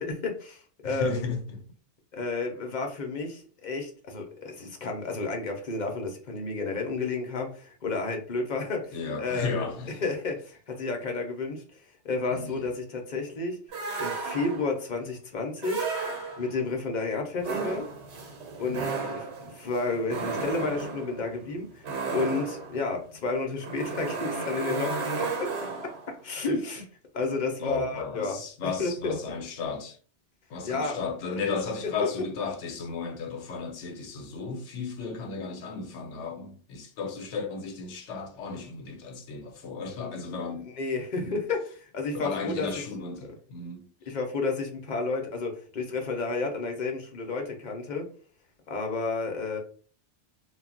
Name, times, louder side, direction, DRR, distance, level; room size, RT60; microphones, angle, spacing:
voice 1, 0.0-1.3 2.1-9.7 10.0-11.6 12.0-13.6 14.0-15.8 16.4-17.8 18.6-21.8 22.1-25.5 26.2-26.9 27.1-28.4 28.6-29.1 30.6-31.0 40.4-41.6 41.9-42.8 43.2-43.4 44.1-48.1 48.7-49.6, left 3 dB, 50° left, 0.7 m, -31 dB
voice 2, 0.8-1.6 8.9-10.0 12.3-12.7 18.7-18.9 27.6-30.0 30.5-40.7 41.2-41.5 42.1-43.9, left 5 dB, 85° left, 0.9 m, -34 dB
sound 1, 13.7-14.8 15.6-16.7 17.4-26.1, right 4 dB, 75° right, 1.0 m, -33 dB
2.2 x 2.0 x 3.7 m
omnidirectional pair, 1.2 m